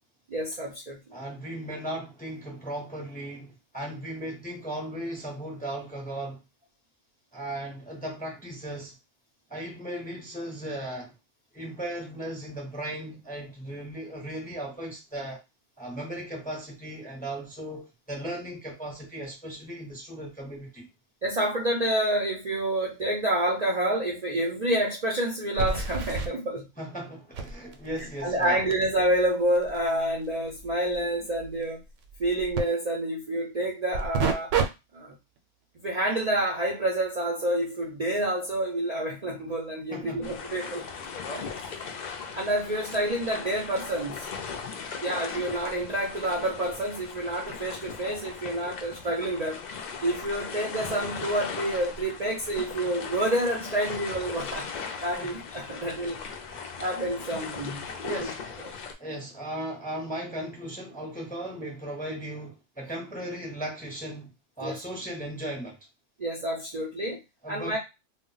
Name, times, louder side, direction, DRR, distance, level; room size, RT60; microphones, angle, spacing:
voice 1, 0.3-1.0 21.2-26.7 28.2-31.8 32.2-34.5 34.9-35.1 35.8-40.9 41.3-41.9 42.3-44.3 45.0-49.6 50.0-56.2 56.8-58.3 64.6-64.8 66.2-67.2 67.5-67.8, right 1 dB, 50° right, 0.5 m, -28 dB
voice 2, 1.1-6.4 7.3-9.0 9.5-11.1 11.5-15.4 15.8-20.9 26.8-28.6 39.9-40.3 44.9-45.0 55.2-55.4 56.0-56.2 56.4-56.7 58.0-58.7 59.0-65.8 67.4-67.8, right 1 dB, 10° left, 0.5 m, -37 dB
sound 1, 23.7-23.8 24.2-24.3 25.6-26.3 27.3-32.6 33.9-34.7 35.1-35.4 40.0-40.1 41.0-41.1, right 5 dB, 85° right, 0.9 m, -32 dB
sound 2, 40.2-58.9, left 5 dB, 65° left, 0.4 m, -38 dB
2.1 x 2.1 x 3.8 m
omnidirectional pair, 1.2 m